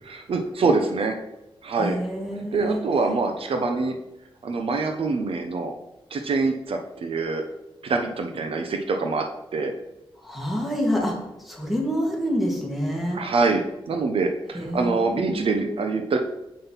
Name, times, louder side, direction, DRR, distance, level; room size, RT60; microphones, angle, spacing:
voice 1, 0.0-1.2 1.6-2.0 2.5-4.0 4.4-5.7 6.1-7.4 7.8-9.2 9.5-9.7 13.1-16.2, right 3 dB, 70° right, 5 dB, 0.9 m, -25 dB
voice 2, 1.8-2.8 10.2-11.2 11.4-13.2 14.5-15.8, equal, ahead, 0 dB, 2.2 m, -27 dB
7.7 x 5.6 x 5.7 m, 0.94 s
wide cardioid pair, 115°, 10 cm